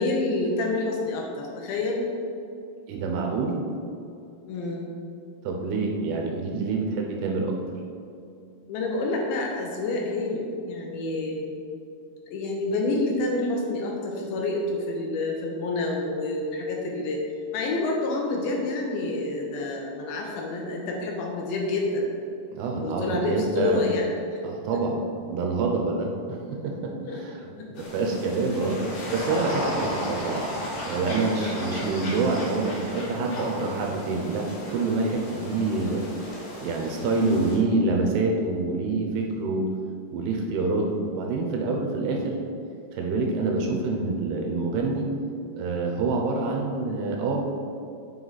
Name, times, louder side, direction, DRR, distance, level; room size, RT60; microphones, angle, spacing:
voice 1, 0.0-2.1 4.5-4.9 8.7-11.5 12.3-17.3 17.5-22.1 22.8-24.1 27.1-27.2 27.6-27.9 31.7-31.8, left 2 dB, 85° left, 0 dB, 2.0 m, -28 dB
voice 2, 2.9-3.6 5.4-7.6 22.5-23.9 24.4-25.0 25.3-27.5 27.8-30.4 30.9-36.1 36.6-39.7 40.1-42.4 42.9-45.1 45.6-47.4, right 3 dB, 80° right, 1 dB, 2.5 m, -26 dB
sound 1, 27.8-37.6, left 1 dB, 65° left, 3.6 m, -35 dB
7.8 x 5.4 x 3.9 m, 2.6 s
omnidirectional pair, 5.1 m